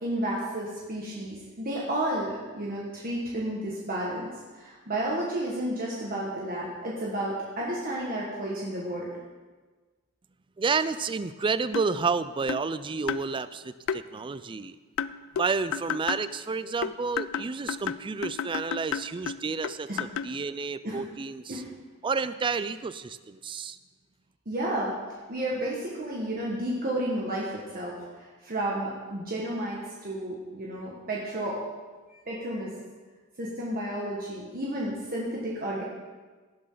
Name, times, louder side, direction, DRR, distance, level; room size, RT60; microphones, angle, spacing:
voice 1, 0.0-9.1 19.9-20.0 20.8-21.0 21.5-21.7 24.5-24.9 25.3-27.9 28.4-31.6 32.1-32.7 33.4-35.8, right 1 dB, 45° right, -5 dB, 1.6 m, -32 dB
voice 2, 10.6-14.8 15.4-21.6 22.0-23.8, right 4 dB, 25° right, 14 dB, 0.4 m, -30 dB
sound 1, 11.7-12.0 12.5-12.7 13.1-13.3 13.9-14.0 15.0-16.3 16.8-20.4, left 8 dB, 65° left, 0.3 m, -32 dB
17.5 x 7.5 x 3.9 m, 1.3 s
head